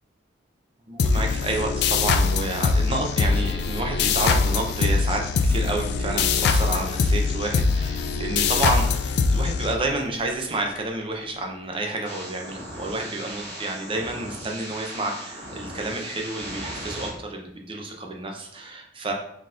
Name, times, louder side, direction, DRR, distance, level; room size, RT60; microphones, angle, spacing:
voice 1, 0.9-19.1, right 2 dB, 30° right, 2 dB, 0.6 m, -30 dB
sound 1, 1.0-10.2, left 4 dB, 65° left, 0.3 m, -23 dB
sound 2, 12.1-17.1, right 1 dB, 65° right, 1.5 m, -37 dB
4.1 x 4.0 x 2.5 m, 0.74 s
head